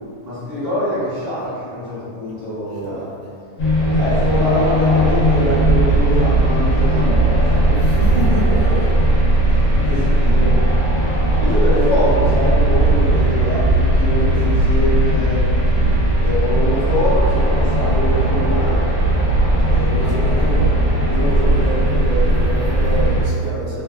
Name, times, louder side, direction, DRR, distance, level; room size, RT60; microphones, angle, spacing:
voice 1, 0.2-3.0 3.9-8.0 9.4-10.6 11.4-15.8 16.1-18.9 19.7-20.5 21.0-21.6, left 1 dB, 15° left, -16 dB, 1.0 m, -24 dB
voice 2, 2.8-3.1 7.8-9.1 9.8-9.9 20.0-20.8 21.2-23.8, right 1 dB, 80° right, -5 dB, 1.1 m, -27 dB
sound 1, 3.6-23.2, right 1 dB, 65° left, 1.0 m, -16 dB
2.7 x 2.2 x 2.2 m, 2.2 s
omnidirectional pair, 1.5 m